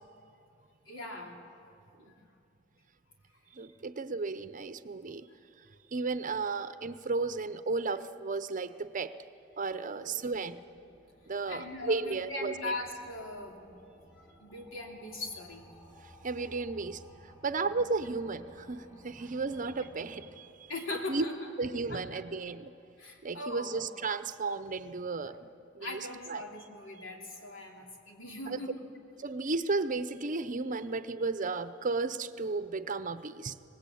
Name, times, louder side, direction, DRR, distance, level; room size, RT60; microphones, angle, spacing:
voice 1, 0.9-1.4 2.0-2.3 10.0-10.5 11.5-13.8 14.4-15.7 17.6-17.7 20.7-21.5 21.9-22.2 23.0-23.8 25.8-28.7, left 2 dB, 75° left, 1 dB, 3.3 m, -40 dB
voice 2, 3.5-5.3 5.9-9.2 9.6-10.6 11.3-12.7 16.0-20.7 21.1-21.2 21.6-22.7 23.2-26.4 28.5-28.6 29.2-33.6, right 3 dB, 40° right, 12 dB, 0.7 m, -34 dB
sound 1, 9.9-20.3, equal, 30° left, 5.4 m, -57 dB
24.0 x 20.0 x 8.5 m, 2.7 s
head